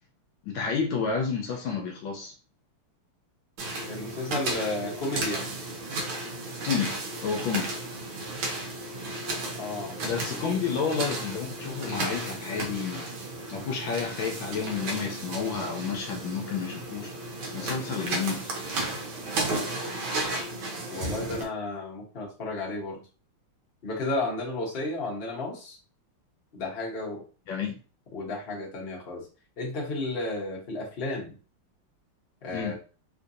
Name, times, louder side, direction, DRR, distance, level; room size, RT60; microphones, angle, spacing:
voice 1, 0.4-2.3 6.7-7.7 10.0-13.1 13.5-17.1 17.5-18.5 27.5-27.8 32.5-32.8, left 6 dB, 75° left, 1.3 m, -30 dB
sound 1, 3.6-21.4, right 2 dB, 70° right, 1.6 m, -34 dB
voice 2, 3.9-5.5 9.5-10.0 20.9-23.1 23.8-25.8 26.5-27.2 28.1-29.3 29.6-31.4 32.4-32.8, left 2 dB, 45° left, 0.8 m, -33 dB
3.7 x 2.5 x 2.6 m
omnidirectional pair, 2.4 m